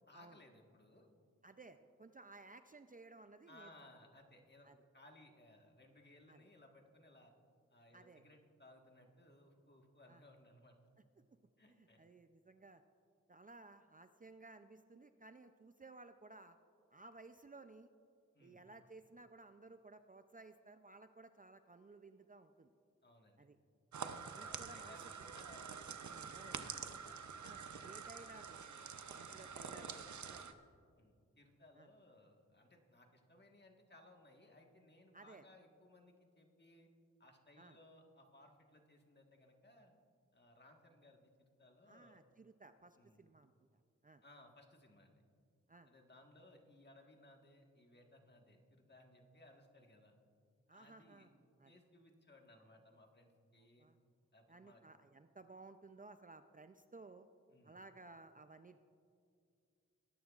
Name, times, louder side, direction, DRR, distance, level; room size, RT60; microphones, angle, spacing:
voice 1, 0.1-1.1 3.5-7.3 7.7-10.8 11.6-12.0 18.3-18.6 23.0-23.5 24.1-27.9 29.0-30.1 31.0-36.9 37.2-39.9 40.3-42.2 42.9-43.2 44.2-45.2 45.9-50.1 50.7-51.3 51.7-53.9 54.3-54.8 57.5-57.8, left 1 dB, 35° left, 2 dB, 1.5 m, -63 dB
voice 2, 1.4-3.7 4.6-4.8 6.3-6.5 7.9-8.2 10.1-10.2 11.7-12.8 13.3-16.6 16.9-17.9 18.4-22.7 23.4-23.6 24.0-25.0 26.3-26.6 27.4-28.8 29.1-30.6 31.8-31.9 35.1-35.5 37.6-37.8 41.9-43.5 44.0-44.2 45.7-45.9 50.7-51.3 51.6-51.7 53.8-54.0 54.5-57.3 57.6-58.8, right 3 dB, 30° right, 9 dB, 0.4 m, -58 dB
sound 1, 23.9-30.5, right 6 dB, 75° right, 0.7 m, -47 dB
19.5 x 11.0 x 2.4 m, 2.3 s
wide cardioid pair, 55°, 29 cm